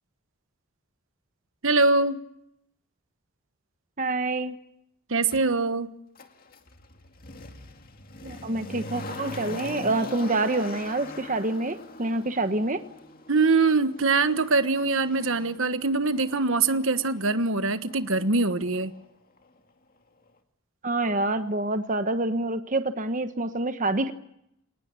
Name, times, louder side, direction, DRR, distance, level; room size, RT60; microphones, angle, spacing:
voice 1, 1.6-2.2 5.1-5.9 13.3-18.9, right 3 dB, 65° right, 11 dB, 1.3 m, -23 dB
voice 2, 4.0-4.5 8.2-12.8 20.8-24.1, right 2 dB, 35° right, 9 dB, 1.2 m, -27 dB
Motor vehicle (road), 5.3-5.4 6.2-19.1 19.4-19.5, left 2 dB, 40° left, 2.2 m, -42 dB
26.0 x 19.0 x 8.9 m, 0.79 s
head